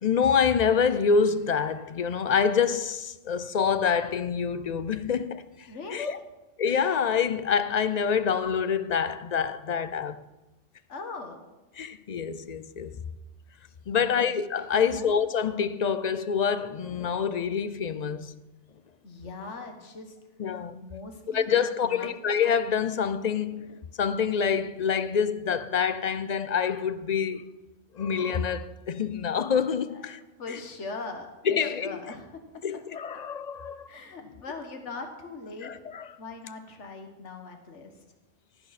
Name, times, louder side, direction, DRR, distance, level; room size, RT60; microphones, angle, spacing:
voice 1, 0.0-5.5 5.9-6.2 6.6-10.2 11.8-13.0 13.9-18.4 20.4-20.8 21.3-27.5 27.9-30.2 30.5-30.6 31.4-32.0 32.6-33.9 35.6-36.1, left 6 dB, 45° left, 0.6 m, -26 dB
voice 2, 5.7-6.1 10.9-11.4 13.9-14.2 14.7-15.1 19.0-20.1 20.7-21.5 21.8-22.1 29.9-30.1 30.4-32.3 33.9-35.7 36.2-37.9, left 3 dB, 85° left, 1.7 m, -40 dB
15.5 x 13.0 x 4.2 m
omnidirectional pair, 1.2 m